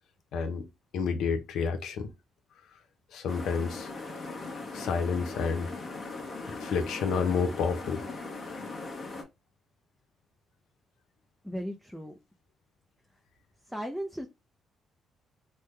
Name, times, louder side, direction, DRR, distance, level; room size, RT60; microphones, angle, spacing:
voice 1, 0.3-0.6 0.9-2.1 3.1-3.9 4.7-5.7 6.6-8.0, left 5 dB, 80° left, 0.7 m, -29 dB
sound 1, 3.3-9.2, left 3 dB, 40° left, 1.1 m, -39 dB
voice 2, 11.4-12.1 13.7-14.3, equal, ahead, 0.5 m, -36 dB
3.3 x 2.2 x 3.2 m
cardioid pair, 90°, 0 cm